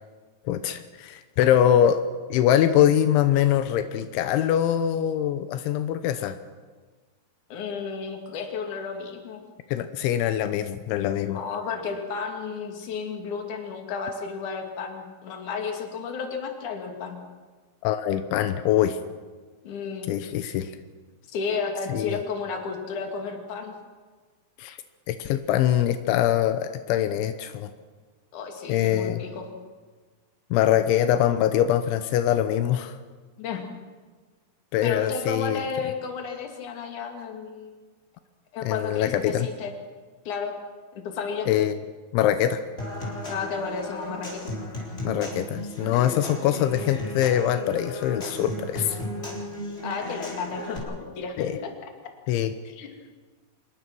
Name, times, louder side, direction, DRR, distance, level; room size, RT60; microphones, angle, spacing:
voice 1, 0.5-2.0 2.3-6.4 9.7-11.4 17.8-19.0 20.1-20.7 21.9-22.2 24.6-24.8 25.1-27.7 28.7-29.2 30.5-33.0 34.7-35.6 38.6-39.5 41.5-41.8 42.1-42.6 45.0-49.0 51.4-51.6 52.3-52.5, left 11 dB, 85° left, 10 dB, 3.2 m, -23 dB
voice 2, 7.5-9.4 11.2-17.2 19.6-20.1 21.3-23.7 28.3-29.5 33.4-33.6 34.8-37.8 38.5-39.7 40.3-40.5 40.9-41.5 43.3-44.5 49.8-51.7 52.7-52.9, left 5 dB, 50° left, 4 dB, 3.5 m, -32 dB
Human voice / Acoustic guitar / Percussion, 42.8-50.8, left 1 dB, 15° left, 4.2 m, -35 dB
26.0 x 21.0 x 6.2 m, 1.4 s
omnidirectional pair, 5.3 m